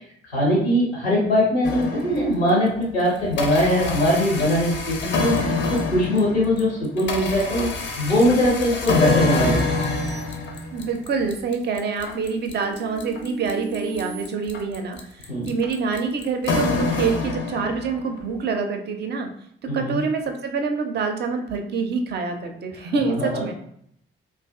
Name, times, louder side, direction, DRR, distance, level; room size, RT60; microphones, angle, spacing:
voice 1, 0.3-7.7 8.0-9.8 15.3-15.5 19.7-20.0 23.2-23.4, equal, 90° left, -4 dB, 0.7 m, -21 dB
sound 1, 1.6-2.6 3.0-18.1, left 3 dB, 40° left, 0.5 m, -26 dB
sound 2, 9.2-11.2 11.7-14.2, right 1 dB, 90° right, 0.5 m, -39 dB
voice 2, 10.7-19.3 19.7-23.5, right 4 dB, 35° right, 5 dB, 0.4 m, -26 dB
2.3 x 2.3 x 2.4 m, 0.68 s
figure-of-eight pair, 45°, 30 cm